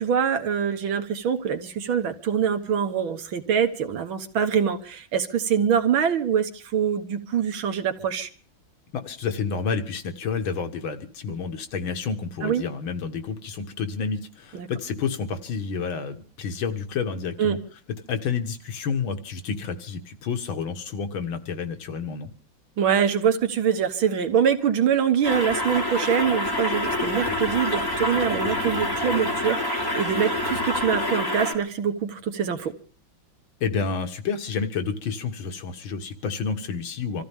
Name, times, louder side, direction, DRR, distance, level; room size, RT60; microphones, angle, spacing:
voice 1, 0.0-8.3 12.4-12.6 14.5-14.7 17.4-17.6 22.8-32.7, right 8 dB, 90° right, 8 dB, 2.1 m, -24 dB
voice 2, 8.9-17.6 18.1-22.3 33.6-37.2, left 5 dB, 85° left, 7 dB, 2.2 m, -29 dB
sound 1, 25.2-31.5, left 1 dB, 10° left, 2.7 m, -27 dB
26.0 x 14.5 x 3.6 m, 0.39 s
omnidirectional pair, 2.1 m